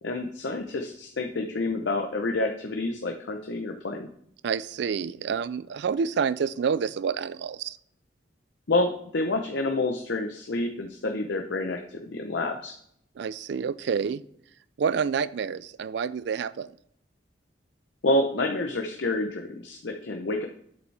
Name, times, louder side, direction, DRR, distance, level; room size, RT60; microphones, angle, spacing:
voice 1, 0.0-4.1 8.7-12.8 18.0-20.5, left 2 dB, 70° left, 4 dB, 0.7 m, -28 dB
voice 2, 4.4-7.8 13.2-14.2 14.8-16.7, right 6 dB, 65° right, 17 dB, 0.4 m, -28 dB
8.1 x 5.2 x 3.3 m, 0.68 s
head